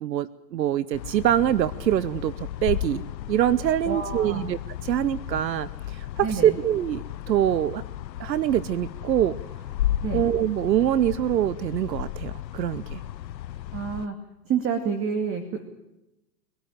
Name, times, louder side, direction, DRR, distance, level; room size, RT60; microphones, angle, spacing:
voice 1, 0.0-3.0 3.3-7.8 8.2-9.4 10.1-13.0, right 11 dB, 85° right, 18 dB, 1.0 m, -24 dB
sound 1, 0.9-14.1, left 12 dB, 85° left, 0.9 m, -34 dB
voice 2, 3.9-4.5 6.2-6.6 10.0-10.2 13.7-14.2 14.5-15.7, right 6 dB, 25° right, 7 dB, 2.5 m, -28 dB
24.5 x 17.5 x 9.0 m, 0.92 s
hypercardioid pair, 125°, 49 cm